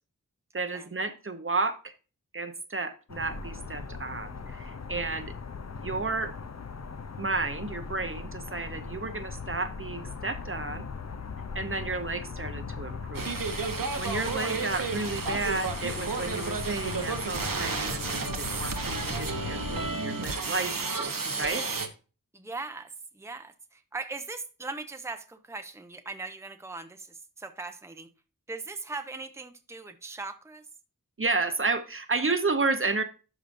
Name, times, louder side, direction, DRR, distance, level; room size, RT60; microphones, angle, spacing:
voice 1, 0.5-1.9 2.3-5.3 5.8-6.3 7.2-10.8 11.5-13.3 13.8-21.1 21.4-21.7 31.2-33.0, right 3 dB, 40° right, 9 dB, 0.8 m, -32 dB
sound 1, 3.1-19.9, left 5 dB, 50° left, 0.7 m, -39 dB
sound 2, 13.1-21.9, right 4 dB, 75° right, 1.1 m, -32 dB
voice 2, 14.2-14.7 19.6-19.8 22.3-28.1 28.5-30.7, right 3 dB, 10° right, 7 dB, 0.7 m, -40 dB
12.5 x 5.0 x 2.6 m, 0.34 s
wide cardioid pair, 55°, 34 cm